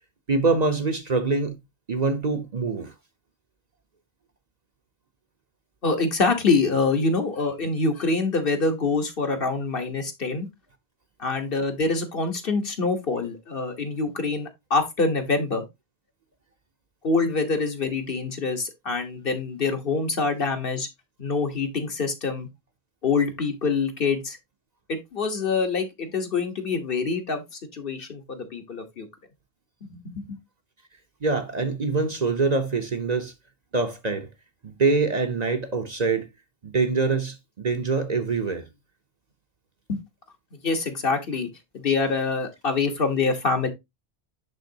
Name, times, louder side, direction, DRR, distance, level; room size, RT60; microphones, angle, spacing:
voice 1, 0.3-1.6 1.9-2.9 31.2-33.3 33.7-34.3 34.6-36.3 36.6-38.7, right 4 dB, 40° right, 0.8 m, -24 dB
voice 2, 5.8-10.5 11.2-15.6 17.0-20.9 21.2-22.5 23.0-24.4 24.9-27.4 27.7-29.1 29.9-30.3 39.9-40.0 40.6-41.5 41.7-43.7, left 4 dB, 55° left, 1.4 m, -25 dB
10.5 x 3.8 x 2.7 m
omnidirectional pair, 1.1 m